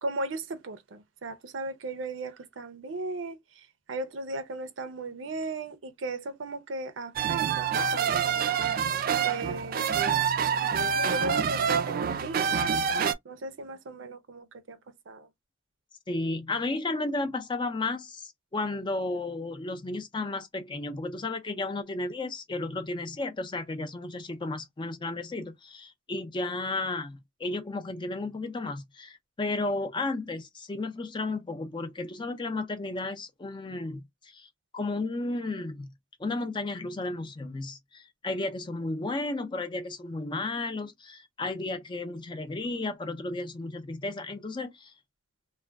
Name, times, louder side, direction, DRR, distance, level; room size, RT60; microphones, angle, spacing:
voice 1, 0.0-3.4 3.9-8.6 9.2-10.0 11.1-12.6 13.2-14.8 15.1-15.3, right 2 dB, 85° right, 0.6 m, -36 dB
sound 1, 7.2-13.1, right 7 dB, 50° right, 0.3 m, -26 dB
voice 2, 16.1-34.5 34.7-35.9 36.2-44.9, left 2 dB, 25° left, 0.5 m, -33 dB
2.4 x 2.2 x 3.3 m
head